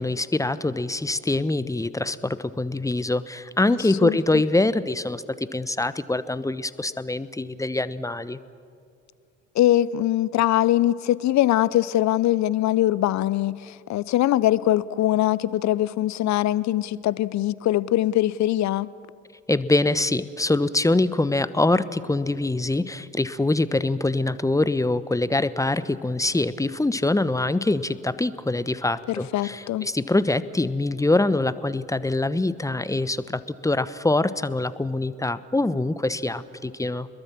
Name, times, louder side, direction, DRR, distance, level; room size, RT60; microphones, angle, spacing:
voice 1, 0.0-8.4 19.5-37.1, left 2 dB, 10° left, 1.0 m, -24 dB
voice 2, 9.5-18.9 29.1-29.9, left 14 dB, 50° left, 0.8 m, -22 dB
29.0 x 21.5 x 7.5 m
figure-of-eight pair, 50°, 37 cm